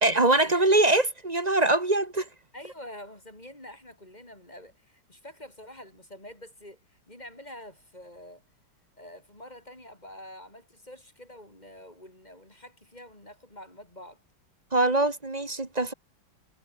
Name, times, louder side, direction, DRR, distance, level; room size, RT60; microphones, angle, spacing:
voice 1, 0.0-2.3 14.7-15.9, right 2 dB, 20° right, 1.6 m, -23 dB
voice 2, 2.5-8.4 9.0-14.2, left 1 dB, 20° left, 5.9 m, -47 dB
omnidirectional pair, 2.1 m